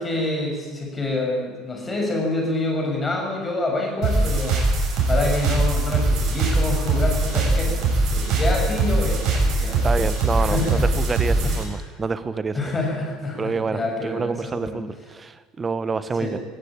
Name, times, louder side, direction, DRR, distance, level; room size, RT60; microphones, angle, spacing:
voice 1, 0.0-4.6 5.0-9.8 10.4-10.8 11.4-11.6 12.5-14.8 16.2-16.4, left 2 dB, 20° left, 1 dB, 7.1 m, -27 dB
sound 1, 4.0-11.6, right 2 dB, 50° right, 7.0 m, -21 dB
voice 2, 9.8-12.7 13.4-16.4, right 4 dB, 25° right, 14 dB, 1.2 m, -27 dB
19.5 x 16.5 x 8.9 m, 1.5 s
figure-of-eight pair, 65°, 0 cm